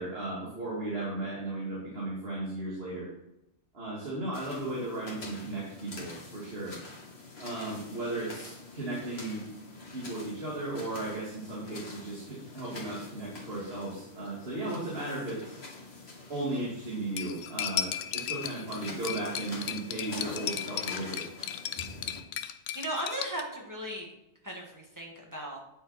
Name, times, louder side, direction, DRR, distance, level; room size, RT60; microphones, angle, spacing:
voice 1, 0.0-3.1 3.7-6.8 7.4-9.5 9.9-15.6 16.3-21.3, right 2 dB, 45° right, -6 dB, 2.5 m, -36 dB
sound 1, 4.3-22.2, left 3 dB, 50° left, 2.0 m, -46 dB
Cutlery silverware, 17.2-23.4, left 9 dB, 70° left, 0.9 m, -35 dB
voice 2, 22.8-24.1 24.4-25.6, right 1 dB, 15° right, -1 dB, 1.9 m, -36 dB
9.1 x 6.7 x 4.3 m, 0.87 s
omnidirectional pair, 1.4 m